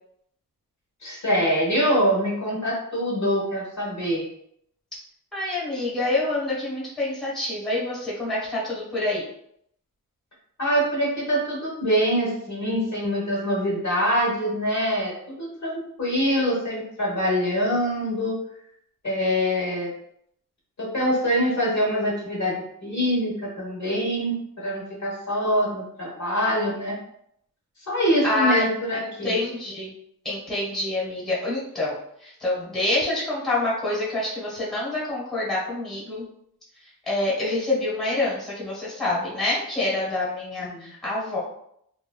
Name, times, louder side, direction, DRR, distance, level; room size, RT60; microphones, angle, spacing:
voice 1, 1.0-4.2 10.6-18.3 19.0-19.9 20.8-27.0 27.9-29.4 40.6-40.9, equal, 55° left, -5 dB, 1.1 m, -24 dB
voice 2, 5.3-9.2 28.2-28.7 28.9-29.9 30.2-36.2 37.1-41.4, left 2 dB, ahead, -7 dB, 1.3 m, -27 dB
3.1 x 2.3 x 2.2 m, 0.72 s
wide cardioid pair, 130°, 34 cm